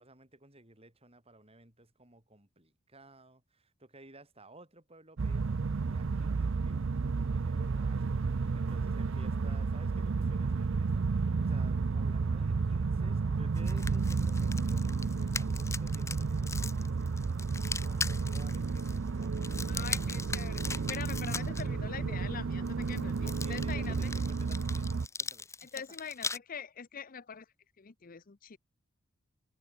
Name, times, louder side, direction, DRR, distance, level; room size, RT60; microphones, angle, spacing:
voice 1, 0.0-17.1 17.8-20.1 21.1-21.2 23.2-25.8, right 1 dB, 30° right, 7.4 m, -55 dB
sound 1, 5.2-25.1, right 4 dB, 65° right, 0.5 m, -32 dB
sound 2, 13.6-21.6 22.7-26.4, left 4 dB, 15° left, 1.0 m, -40 dB
voice 2, 19.7-24.1 25.6-27.5 27.8-28.6, left 6 dB, 45° left, 0.7 m, -43 dB
head